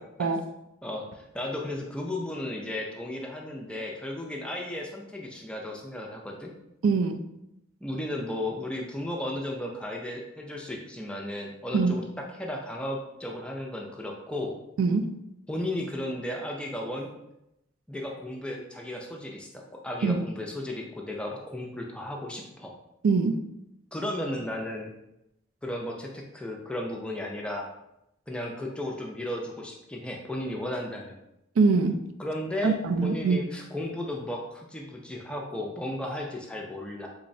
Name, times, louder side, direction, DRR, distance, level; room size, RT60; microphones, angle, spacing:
voice 1, 0.8-6.5 7.8-14.6 15.5-17.1 17.9-22.7 23.9-24.9 25.6-27.7 28.3-31.2 32.2-32.8 33.0-37.1, left 1 dB, 5° left, 0 dB, 0.3 m, -34 dB
voice 2, 6.8-7.2 11.7-11.9 14.8-15.1 20.0-20.2 23.0-23.4 31.6-32.0 32.6-33.4, right 4 dB, 85° right, 6 dB, 0.4 m, -23 dB
3.8 x 3.1 x 2.6 m, 0.85 s
head